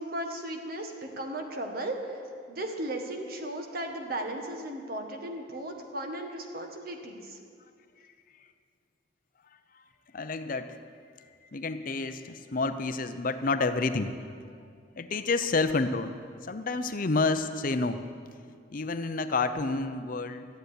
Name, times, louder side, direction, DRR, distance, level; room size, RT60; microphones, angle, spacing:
voice 1, 0.0-2.2 2.5-7.4, right 1 dB, 50° right, 3 dB, 1.6 m, -36 dB
voice 2, 10.1-10.8 11.2-14.3 15.0-18.0 18.7-20.5, left 3 dB, 45° left, 10 dB, 0.6 m, -29 dB
13.5 x 7.9 x 9.9 m, 2.2 s
head